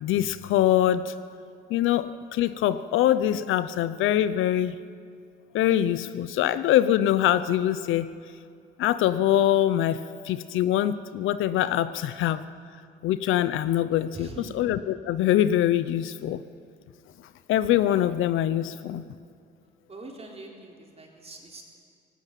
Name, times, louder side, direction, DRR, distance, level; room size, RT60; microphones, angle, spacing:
voice 1, 0.0-1.1 1.7-4.8 5.5-8.1 8.8-12.4 13.0-14.3 14.5-16.4 17.5-19.0, left 12 dB, 85° left, 15 dB, 0.8 m, -24 dB
voice 2, 14.1-14.5 19.9-21.6, right 2 dB, 30° right, 0 dB, 3.9 m, -43 dB
18.0 x 17.5 x 9.3 m, 2.3 s
cardioid pair, 90°, 20 cm